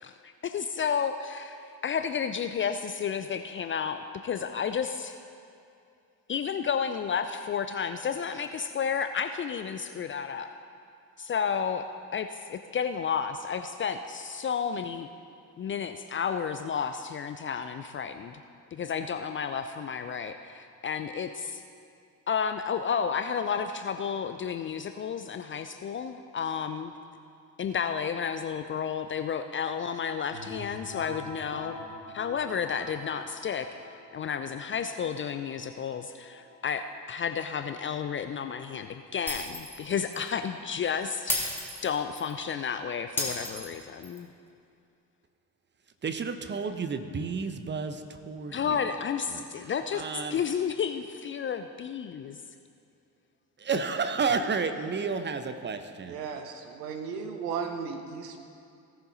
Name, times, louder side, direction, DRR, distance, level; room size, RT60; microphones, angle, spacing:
voice 1, 0.0-5.2 6.3-10.5 11.2-11.9 12.1-15.1 15.6-18.4 18.7-21.6 22.3-26.9 27.6-31.8 32.1-33.9 34.1-41.5 41.8-44.3 48.5-50.0 50.3-52.4, left 7 dB, 25° left, 8 dB, 0.4 m, -32 dB
sound 1, 30.3-39.9, left 3 dB, 80° left, 2.5 m, -46 dB
Shatter, 39.3-39.8 40.1-40.3 41.3-42.3 43.2-44.2, left 1 dB, 5° left, 2.7 m, -32 dB
voice 2, 46.0-48.8 49.3-49.4 49.9-50.4 53.6-56.2, right 5 dB, 20° right, 8 dB, 0.9 m, -31 dB
voice 3, 56.1-58.4, right 6 dB, 75° right, 6 dB, 1.1 m, -35 dB
17.5 x 7.0 x 4.1 m, 2.5 s
figure-of-eight pair, 50°, 49 cm